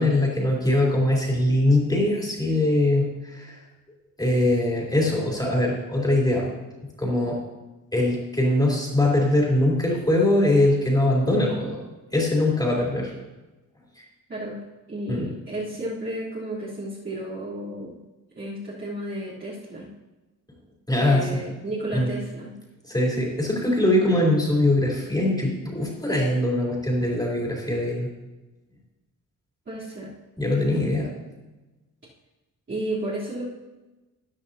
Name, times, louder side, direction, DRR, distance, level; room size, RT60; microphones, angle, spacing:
voice 1, 0.0-3.6 4.2-6.5 7.0-7.4 7.9-11.8 12.1-13.1 15.1-15.3 20.9-21.3 21.9-22.1 22.9-28.1 30.4-31.1, left 1 dB, 10° left, -3 dB, 3.9 m, -22 dB
voice 2, 14.9-18.0 18.4-19.9 21.0-22.5 29.7-30.1 32.7-33.4, right 1 dB, 35° right, -11 dB, 3.6 m, -32 dB
14.5 x 10.0 x 2.9 m, 1.1 s
cardioid pair, 105°, 32 cm